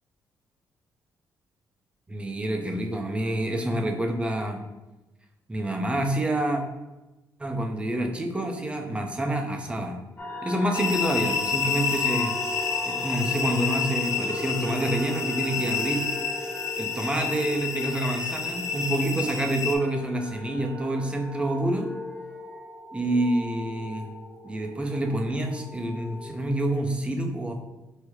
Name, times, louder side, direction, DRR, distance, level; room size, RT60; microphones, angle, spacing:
voice 1, 2.1-4.6 5.5-6.6 7.4-10.0 10.4-12.4 12.8-16.1 16.8-21.9 22.9-24.1 24.4-27.5, right 1 dB, 15° right, 3 dB, 0.6 m, -27 dB
sound 1, 10.2-26.6, left 1 dB, 25° left, 1.0 m, -37 dB
sound 2, 10.7-19.7, left 6 dB, 50° left, 0.7 m, -29 dB
4.8 x 2.1 x 4.7 m, 1.1 s
cardioid pair, 90°, 7 cm